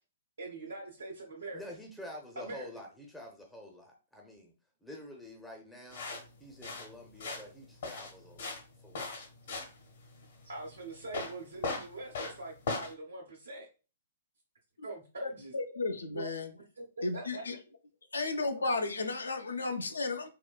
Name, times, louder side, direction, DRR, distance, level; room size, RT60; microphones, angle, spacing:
voice 1, 0.4-1.6 2.4-2.7 7.2-7.3 10.4-13.7 14.8-15.5 16.1-16.3 16.8-17.4, right 2 dB, 75° right, 0.9 m, -43 dB
voice 2, 1.5-4.5 4.8-6.1 6.4-9.1, left 1 dB, 5° left, 0.5 m, -48 dB
sound 1, 5.9-12.9, left 3 dB, 55° left, 0.9 m, -39 dB
voice 3, 15.5-16.5 17.0-17.6 18.1-20.3, left 3 dB, 75° left, 0.5 m, -33 dB
3.6 x 2.2 x 2.3 m
figure-of-eight pair, 115°, 0 cm